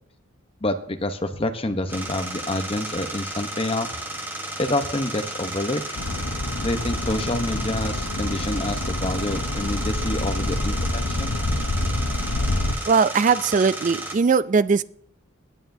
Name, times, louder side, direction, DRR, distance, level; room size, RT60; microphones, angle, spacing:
voice 1, 0.6-4.0 4.6-6.0 6.6-11.3, left 1 dB, 25° left, 7 dB, 0.9 m, -27 dB
sound 1, 1.9-14.2, right 1 dB, 10° right, 1.2 m, -33 dB
sound 2, 5.9-12.7, left 1 dB, 80° left, 0.9 m, -27 dB
voice 2, 12.9-14.8, right 5 dB, 35° right, 16 dB, 0.3 m, -19 dB
18.0 x 9.2 x 2.7 m, 0.69 s
head